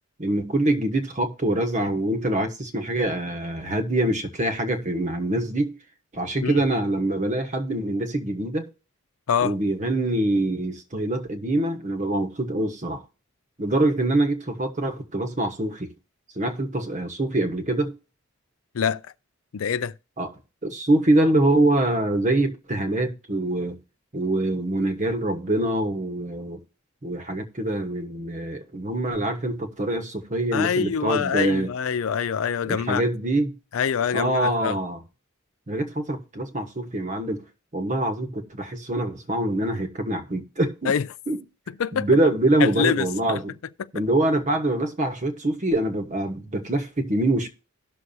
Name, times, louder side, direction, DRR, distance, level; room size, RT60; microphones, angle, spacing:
voice 1, 0.2-5.8 6.1-8.7 9.4-13.0 13.6-15.9 16.4-18.0 20.2-20.3 20.6-23.8 24.1-26.6 27.0-31.7 32.7-33.6 34.1-35.0 35.7-37.4 37.7-40.9 41.3-41.4 41.9-43.5 43.9-47.5, right 1 dB, 35° right, 1.2 m, -24 dB
voice 2, 19.5-19.9 30.5-33.0 33.7-34.8 40.8-41.1 41.7-42.1 42.6-43.4, left 7 dB, 85° left, 0.4 m, -25 dB
17.5 x 6.2 x 2.7 m
head